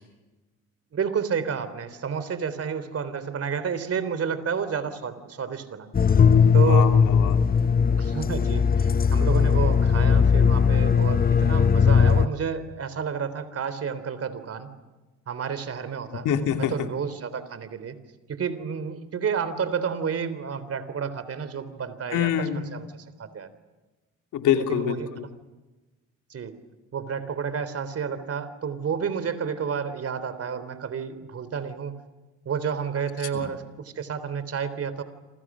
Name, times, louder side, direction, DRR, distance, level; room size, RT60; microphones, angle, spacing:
voice 1, 0.9-5.9 6.5-6.9 8.0-14.7 15.3-16.3 16.6-18.0 18.3-23.5 24.7-25.3 26.3-26.6 26.9-32.0 32.5-35.0, right 6 dB, 50° right, 13 dB, 3.7 m, -30 dB
sound 1, 5.9-12.3, left 6 dB, 30° left, 0.9 m, -19 dB
voice 2, 6.5-7.4 16.1-16.9 22.1-22.7 24.3-25.2 33.3-33.5, left 9 dB, 85° left, 5 dB, 3.1 m, -26 dB
28.5 x 27.5 x 6.3 m, 1.1 s
cardioid pair, 90°, 30 cm